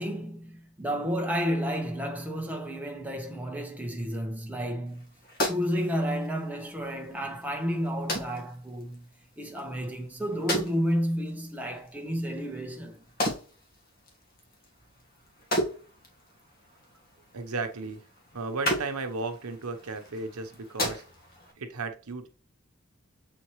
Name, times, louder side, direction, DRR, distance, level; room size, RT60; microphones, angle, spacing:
voice 1, 0.0-5.1 5.4-9.0 9.4-13.0, equal, 5° right, 0.9 m, -31 dB
sound 1, 4.9-21.5, equal, 40° left, 1.6 m, -37 dB
voice 2, 17.3-18.0 18.3-21.0 21.6-22.3, right 3 dB, 90° right, 1.0 m, -34 dB
7.3 x 4.4 x 3.1 m
head